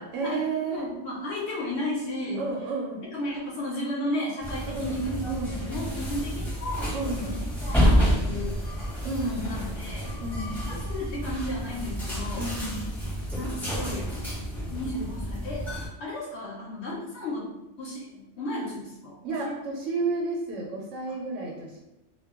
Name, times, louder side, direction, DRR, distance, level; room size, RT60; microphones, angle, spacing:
voice 1, 0.0-0.9 2.3-3.0 4.7-5.7 6.9-7.4 9.0-9.5 10.2-10.7 12.4-13.0 19.2-21.8, right 3 dB, 85° right, -2 dB, 0.9 m, -32 dB
voice 2, 0.7-2.5 3.1-5.2 5.6-6.9 7.2-8.6 9.2-10.2 10.7-12.5 13.3-14.1 14.7-15.7 16.0-17.5 17.8-19.8, left 1 dB, 70° left, -3 dB, 0.8 m, -34 dB
sound 1, 4.4-15.9, equal, ahead, 0.8 m, -29 dB
2.2 x 2.2 x 3.4 m, 0.92 s
omnidirectional pair, 1.3 m